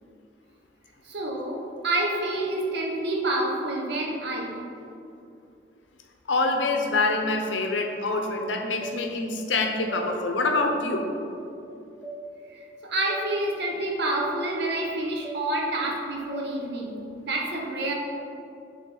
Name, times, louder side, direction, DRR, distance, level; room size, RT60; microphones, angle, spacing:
voice 1, 1.0-4.6 12.5-17.0 17.2-17.9, right 1 dB, 60° right, -1 dB, 0.8 m, -28 dB
voice 2, 6.3-11.1, left 3 dB, 75° left, 3 dB, 0.6 m, -25 dB
sound 1, 8.8-9.0 9.9-10.0 10.9-11.1 12.0-12.2 13.1-13.2 14.2-14.3 15.2-15.4 16.3-16.5, right 2 dB, 5° left, 0.8 m, -37 dB
7.1 x 3.4 x 3.9 m, 2.7 s
head